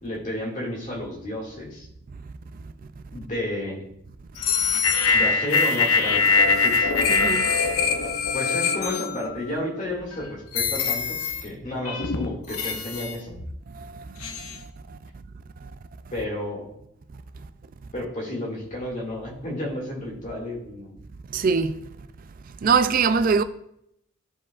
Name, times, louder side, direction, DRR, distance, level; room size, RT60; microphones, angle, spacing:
voice 1, 0.0-1.9 3.1-3.8 5.1-6.9 8.3-13.3 16.1-16.7 17.9-21.0, left 1 dB, 35° left, 2.1 m, -32 dB
sound 1, 4.4-9.6 10.1-10.2 10.5-11.5 11.9-13.5 14.2-14.6, left 5 dB, 80° left, 0.8 m, -23 dB
voice 2, 7.1-7.5 21.3-21.7 22.6-23.4, right 5 dB, 40° right, 0.3 m, -21 dB
12.5 x 4.9 x 2.4 m
head